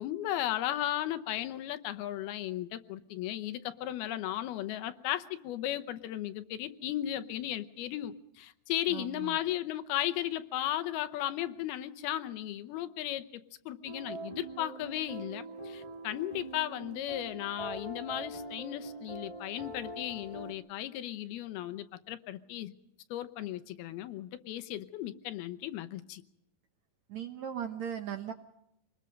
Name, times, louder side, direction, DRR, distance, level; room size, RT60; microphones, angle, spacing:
voice 1, 0.0-22.7 23.1-26.2, left 13 dB, 80° left, 10 dB, 2.9 m, -35 dB
voice 2, 8.9-9.4 27.1-28.3, right 9 dB, 70° right, 7 dB, 1.7 m, -38 dB
sound 1, 13.8-20.5, right 2 dB, 20° right, 1.0 m, -43 dB
26.5 x 20.5 x 5.3 m, 0.81 s
omnidirectional pair, 4.5 m